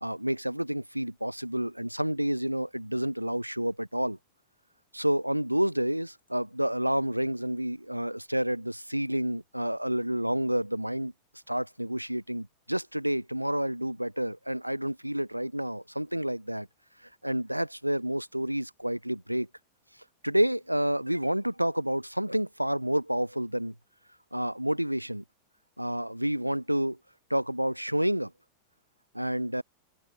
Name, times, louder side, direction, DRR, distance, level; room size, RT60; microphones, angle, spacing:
voice 1, 0.0-4.2 4.9-11.1 11.5-16.7 17.2-19.5 20.2-23.7 24.3-25.2 25.8-27.0 27.3-28.3 29.1-29.6, equal, 90° right, 0.4 m, -29 dB
open air
figure-of-eight pair, 90°, 0 cm